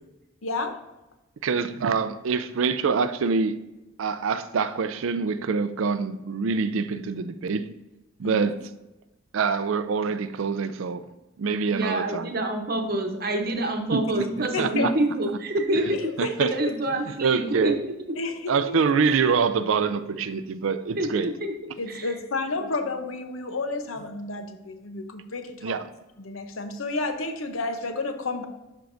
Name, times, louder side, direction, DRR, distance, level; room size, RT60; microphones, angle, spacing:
voice 1, 0.4-0.8 8.2-8.5 14.5-14.9 16.2-16.6 18.2-18.8 21.8-25.7 26.2-28.5, left 3 dB, 80° left, 7 dB, 0.8 m, -31 dB
voice 2, 1.4-3.6 4.0-7.7 8.2-8.6 9.3-11.1 11.4-12.3 13.9-14.0 14.4-14.9 16.2-16.5 17.2-17.8 18.5-21.3 25.6-25.9, right 5 dB, 75° right, 12 dB, 0.4 m, -25 dB
voice 3, 11.7-18.2 20.2-20.3 21.0-21.5 21.9-22.1 22.6-22.7, right 1 dB, 45° right, 4 dB, 0.9 m, -27 dB
12.0 x 4.6 x 2.6 m, 0.99 s
head